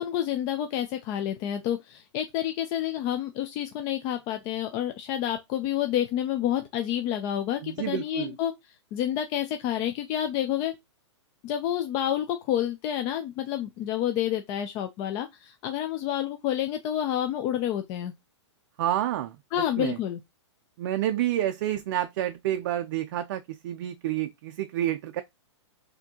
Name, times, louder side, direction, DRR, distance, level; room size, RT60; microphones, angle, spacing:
voice 1, 0.0-8.5 8.9-10.7 11.4-18.1 19.5-20.2, left 11 dB, 25° left, 0.3 m, -29 dB
voice 2, 7.6-8.3 18.8-19.4 19.8-20.0 20.8-25.2, right 12 dB, 45° right, 0.4 m, -29 dB
4.2 x 2.7 x 2.8 m
hypercardioid pair, 145°, 16 cm